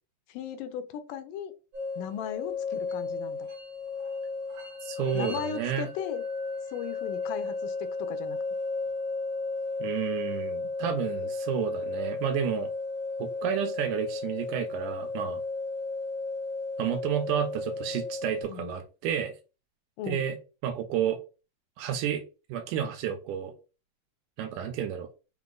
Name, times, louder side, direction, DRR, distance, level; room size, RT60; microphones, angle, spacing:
voice 1, 0.3-1.5 2.0-3.5 5.1-6.2 6.7-8.4 18.5-18.8 20.0-20.3, left 9 dB, 90° left, 9 dB, 2.2 m, -37 dB
sound 1, 1.7-18.4, left 3 dB, 65° right, 1.8 m, -34 dB
voice 2, 4.8-5.9 9.8-12.7 13.2-15.4 16.8-19.3 20.1-20.4 20.6-21.2 21.8-22.2 22.5-23.5 24.4-25.1, right 9 dB, 80° right, 7 dB, 2.2 m, -31 dB
5.7 x 2.0 x 3.7 m, 0.32 s
omnidirectional pair, 3.7 m